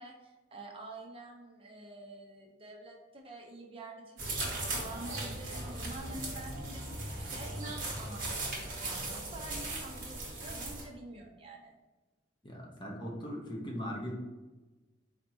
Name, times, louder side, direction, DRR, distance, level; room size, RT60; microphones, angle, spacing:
voice 1, 0.0-11.7, right 2 dB, 30° right, 0 dB, 0.7 m, -47 dB
sound 1, 4.2-10.8, right 2 dB, 50° right, 1.4 m, -38 dB
voice 2, 12.4-14.1, equal, 25° left, -1 dB, 0.8 m, -39 dB
4.3 x 2.9 x 4.3 m, 1.2 s
head